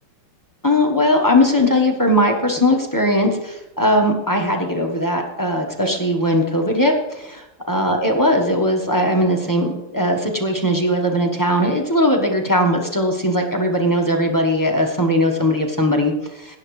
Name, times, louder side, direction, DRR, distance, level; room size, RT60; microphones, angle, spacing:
voice 1, 0.6-16.6, left 1 dB, 20° left, 1 dB, 0.6 m, -19 dB
16.5 x 10.0 x 3.2 m, 0.99 s
omnidirectional pair, 2.2 m